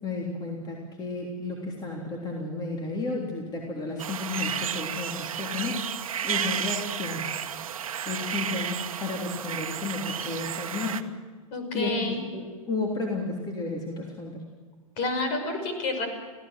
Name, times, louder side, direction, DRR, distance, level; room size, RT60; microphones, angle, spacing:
voice 1, 0.0-7.3 8.0-11.1 11.7-14.4, left 3 dB, 20° left, -1 dB, 3.4 m, -33 dB
sound 1, 4.0-11.0, right 8 dB, 70° right, 1.3 m, -32 dB
voice 2, 11.5-12.2 15.0-16.1, left 2 dB, 45° left, 6 dB, 5.9 m, -29 dB
26.0 x 16.5 x 7.7 m, 1.4 s
hypercardioid pair, 105°, 18 cm